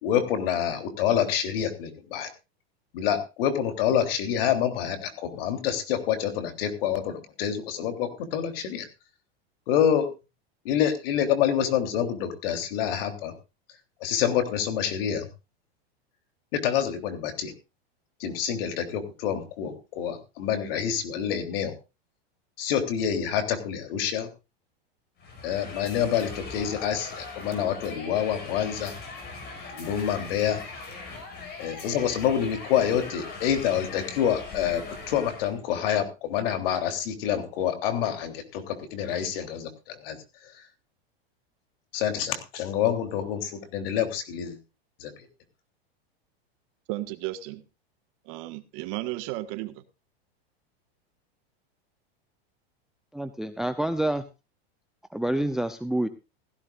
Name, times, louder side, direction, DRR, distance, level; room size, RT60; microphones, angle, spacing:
voice 1, 0.0-2.3 2.9-8.9 9.7-10.1 10.6-13.3 14.0-15.3 16.5-17.5 18.2-21.7 22.6-24.3 25.4-28.9 29.7-30.6 31.6-40.2 41.9-44.6 45.0-45.1, left 9 dB, 65° left, 3.4 m, -27 dB
sound 1, 25.2-35.6, left 3 dB, 30° left, 5.9 m, -40 dB
voice 2, 46.9-47.6 48.2-49.8, right 17 dB, 45° right, 1.6 m, -34 dB
voice 3, 53.1-54.2 55.1-56.1, right 1 dB, ahead, 0.6 m, -27 dB
16.5 x 15.5 x 2.5 m
supercardioid pair, 140°, 31 cm